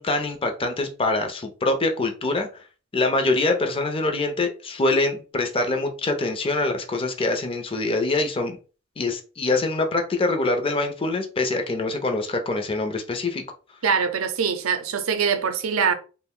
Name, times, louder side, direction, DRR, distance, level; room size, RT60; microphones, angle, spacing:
voice 1, 0.0-2.6 2.9-8.6 9.0-13.4, left 2 dB, 25° left, 0.5 m, -24 dB
voice 2, 13.8-15.9, right 6 dB, 80° right, 0.5 m, -23 dB
2.4 x 2.1 x 3.6 m
head